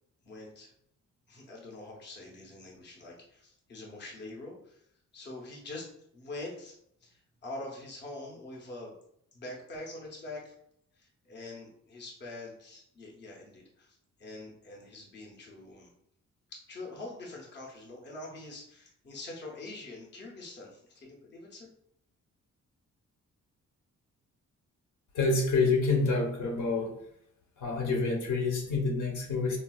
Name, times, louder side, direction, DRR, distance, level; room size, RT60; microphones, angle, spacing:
voice 1, 0.2-0.7 1.3-4.8 5.1-6.7 7.0-8.9 9.3-10.5 11.0-15.9 16.5-21.7, left 2 dB, 35° left, -2 dB, 0.6 m, -44 dB
voice 2, 25.1-26.9 27.6-29.6, left 3 dB, 80° left, 1 dB, 0.9 m, -27 dB
4.1 x 2.3 x 2.2 m, 0.72 s
wide cardioid pair, 175°, 30 cm